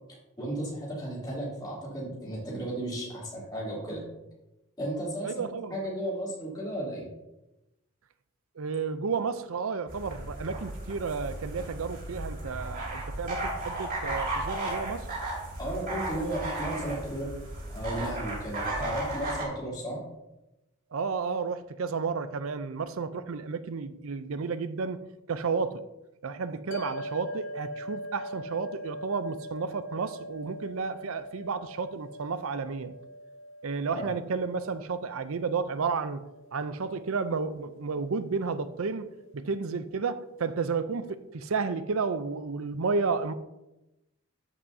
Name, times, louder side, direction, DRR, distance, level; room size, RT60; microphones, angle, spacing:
voice 1, 0.4-4.0 4.8-5.4 5.7-7.1 15.6-17.3 17.7-20.0 33.9-34.1, right 1 dB, 20° left, 3.1 m, -34 dB
voice 2, 5.2-5.9 8.6-15.1 18.6-18.9 20.9-25.8 26.2-32.9 33.6-36.2 36.5-39.1 39.3-43.3, right 5 dB, 70° right, 0.5 m, -32 dB
sound 1, 9.9-19.4, right 2 dB, 45° right, 2.9 m, -35 dB
sound 2, 26.7-39.2, equal, 60° left, 0.7 m, -43 dB
13.5 x 5.6 x 2.7 m
head